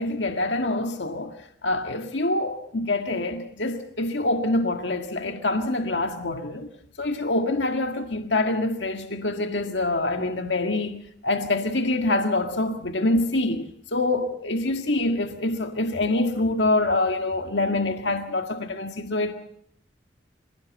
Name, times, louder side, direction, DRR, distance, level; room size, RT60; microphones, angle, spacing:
voice 1, 0.0-1.3 1.6-6.7 7.0-11.0 11.2-19.3, left 2 dB, 75° left, 1.9 m, -25 dB
26.0 x 16.5 x 7.6 m
head